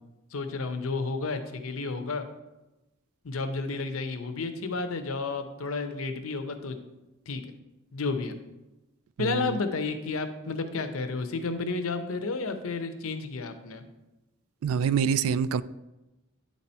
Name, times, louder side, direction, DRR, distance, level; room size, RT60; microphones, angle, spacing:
voice 1, 0.3-2.3 3.2-6.7 7.3-7.4 7.9-8.4 9.2-13.9, left 3 dB, 70° left, 8 dB, 0.7 m, -31 dB
voice 2, 9.2-9.6 14.6-15.6, right 7 dB, 70° right, 17 dB, 0.3 m, -26 dB
9.1 x 4.2 x 4.3 m, 1.0 s
head